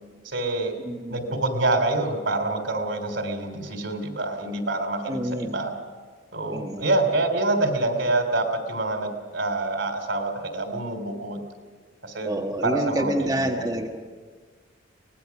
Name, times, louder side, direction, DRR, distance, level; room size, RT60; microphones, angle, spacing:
voice 1, 0.3-0.7 1.1-5.7 6.3-11.4 12.0-12.3 12.6-13.6, right 2 dB, 70° right, 5 dB, 3.4 m, -26 dB
voice 2, 0.8-1.2 5.0-5.6 6.5-6.9 12.2-13.9, right 1 dB, 20° right, 0 dB, 1.4 m, -28 dB
24.5 x 19.5 x 6.0 m, 1.5 s
head